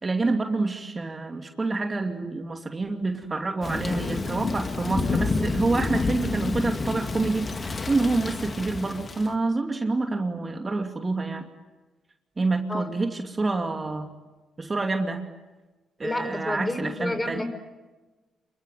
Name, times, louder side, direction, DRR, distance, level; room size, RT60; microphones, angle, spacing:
voice 1, 0.0-11.4 12.4-14.1 14.6-15.2 16.0-17.4, right 3 dB, 25° right, 4 dB, 2.7 m, -27 dB
Thunder / Rain, 3.6-9.3, left 3 dB, 35° left, 2.4 m, -29 dB
voice 2, 16.0-17.4, left 2 dB, 15° left, 9 dB, 5.0 m, -30 dB
28.0 x 23.0 x 9.2 m, 1.2 s
cardioid pair, 90°, 0 cm